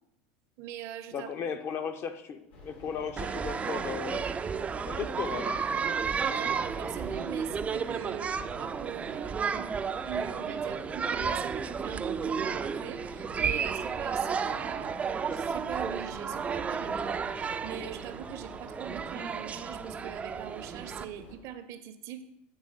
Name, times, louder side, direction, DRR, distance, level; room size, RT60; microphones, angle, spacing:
voice 1, 0.6-1.3 6.3-9.7 10.0-15.0 15.3-22.2, right 10 dB, 60° right, 10 dB, 0.6 m, -42 dB
voice 2, 1.1-4.3 4.8-5.6, left 7 dB, 45° left, 8 dB, 0.6 m, -36 dB
sound 1, 2.5-21.4, left 3 dB, 80° left, 2.3 m, -50 dB
sound 2, 3.2-21.0, right 6 dB, 20° right, 0.3 m, -32 dB
8.2 x 3.0 x 5.5 m, 0.82 s
supercardioid pair, 105°, 6 cm